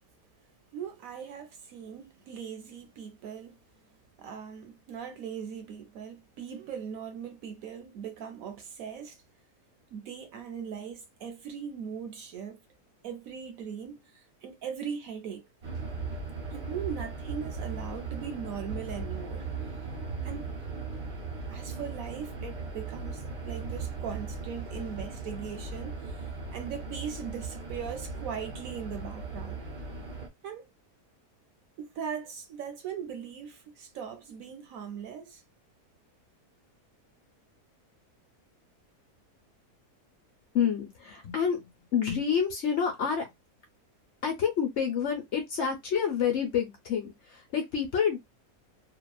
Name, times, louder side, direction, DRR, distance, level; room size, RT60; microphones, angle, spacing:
voice 1, 0.7-3.6 4.2-9.2 9.9-12.6 13.0-15.5 16.5-19.5 20.2-20.6 21.5-29.6 30.4-30.7 31.8-35.4, right 7 dB, 70° right, 1.0 m, -40 dB
sound 1, 15.6-30.3, right 4 dB, 45° right, 0.7 m, -38 dB
voice 2, 40.5-43.3 44.2-48.2, left 7 dB, 55° left, 0.9 m, -28 dB
2.8 x 2.3 x 2.3 m
omnidirectional pair, 1.6 m